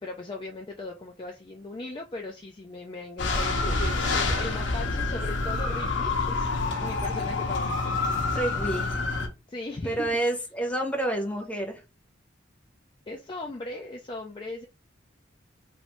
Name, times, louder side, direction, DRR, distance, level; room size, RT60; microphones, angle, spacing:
voice 1, 0.0-7.9 9.5-10.1 13.1-14.7, left 2 dB, 25° left, 0.4 m, -38 dB
sound 1, 3.2-9.3, left 3 dB, 65° left, 0.8 m, -27 dB
voice 2, 8.3-8.9 9.8-11.8, right 1 dB, 5° left, 0.8 m, -28 dB
3.1 x 2.6 x 3.0 m
head